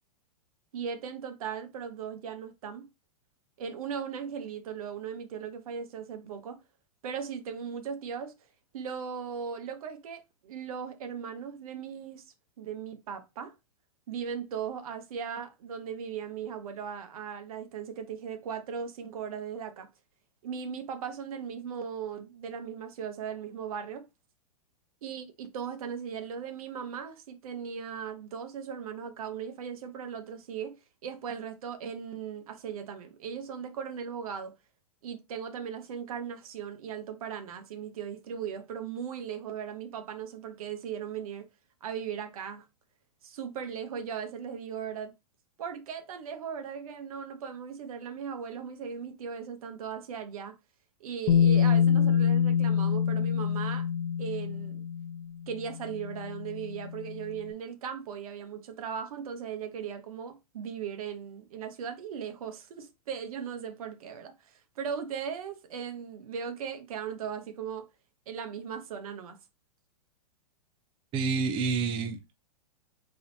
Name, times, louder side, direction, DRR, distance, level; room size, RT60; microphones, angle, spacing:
voice 1, 0.7-2.9 3.6-6.6 7.0-8.3 8.7-12.3 12.6-13.5 14.1-19.9 20.4-24.1 25.0-30.8 31.0-34.5 35.0-41.5 41.8-42.6 43.2-45.1 45.6-50.5 51.0-53.9 54.2-54.8 55.5-67.9 68.3-69.4, right 7 dB, 65° right, 1.1 m, -38 dB
Bass guitar, 51.3-57.3, left 7 dB, 50° left, 0.5 m, -26 dB
voice 2, 71.1-72.4, right 5 dB, 25° right, 0.6 m, -29 dB
4.0 x 2.8 x 4.0 m
hypercardioid pair, 130°, 19 cm